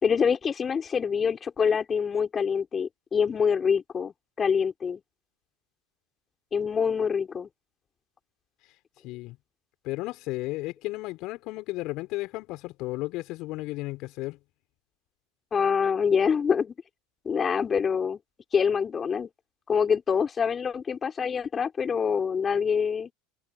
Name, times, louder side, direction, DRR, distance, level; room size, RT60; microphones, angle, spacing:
voice 1, 0.0-5.0 6.5-7.5 15.5-16.7 17.2-18.2 18.5-19.3 19.7-23.1, left 6 dB, 30° left, 4.0 m, -25 dB
voice 2, 9.0-9.4 9.8-14.4, left 20 dB, 55° left, 3.8 m, -34 dB
hypercardioid pair, 85°, 0 cm